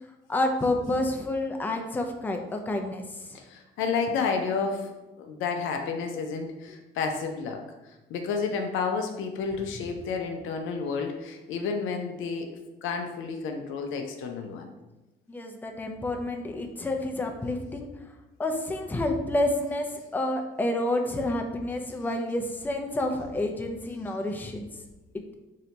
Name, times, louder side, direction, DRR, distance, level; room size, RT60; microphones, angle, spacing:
voice 1, 0.3-3.4 15.3-17.9 18.4-24.7, left 1 dB, 10° left, 3 dB, 0.4 m, -29 dB
voice 2, 3.3-12.5 12.8-14.7, left 5 dB, 85° left, 4 dB, 0.4 m, -31 dB
2.8 x 2.1 x 3.9 m, 1.0 s
cardioid pair, 90°, 20 cm